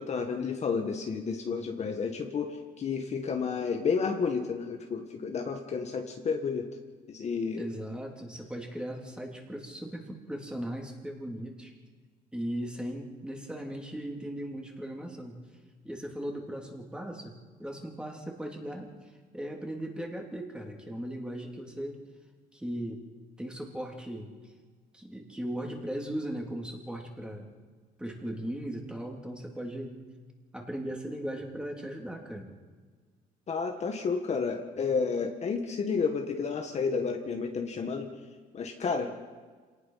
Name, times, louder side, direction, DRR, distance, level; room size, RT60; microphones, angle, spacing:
voice 1, 0.0-6.7 7.1-7.7 33.5-38.1 38.5-39.1, left 5 dB, 40° left, 4 dB, 1.7 m, -31 dB
voice 2, 7.6-11.7 12.3-15.4 15.8-22.0 22.5-23.0 23.4-24.5 24.9-27.5 28.0-30.0 30.5-32.5, right 1 dB, 5° right, 1 dB, 3.3 m, -38 dB
26.5 x 18.5 x 5.8 m, 1.5 s
cardioid pair, 110°, 17 cm